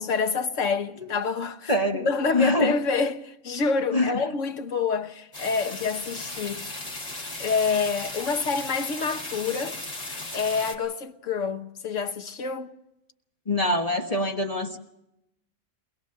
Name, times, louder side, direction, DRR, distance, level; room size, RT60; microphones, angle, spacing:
voice 1, 0.0-6.6 7.4-9.8 10.3-12.7, left 5 dB, 85° left, 1.5 m, -27 dB
voice 2, 1.7-2.1 2.3-2.7 3.9-4.2 13.5-14.8, left 1 dB, 30° left, 1.2 m, -24 dB
sound 1, 5.3-10.8, left 2 dB, 65° left, 3.4 m, -36 dB
22.0 x 21.0 x 6.6 m
omnidirectional pair, 1.3 m